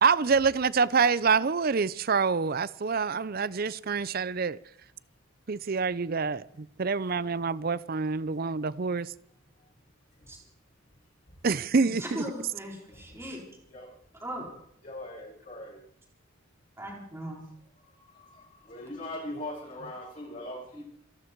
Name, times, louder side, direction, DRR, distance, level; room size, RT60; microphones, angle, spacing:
voice 1, 0.0-4.6 5.5-9.1 11.4-12.2, right 5 dB, 45° right, 0.5 m, -26 dB
voice 2, 11.8-13.4 14.2-14.5 16.8-17.4 20.7-20.8, equal, 10° right, 4.4 m, -38 dB
voice 3, 14.8-15.8 17.9-20.8, left 1 dB, 40° left, 7.4 m, -41 dB
27.0 x 11.5 x 4.6 m
head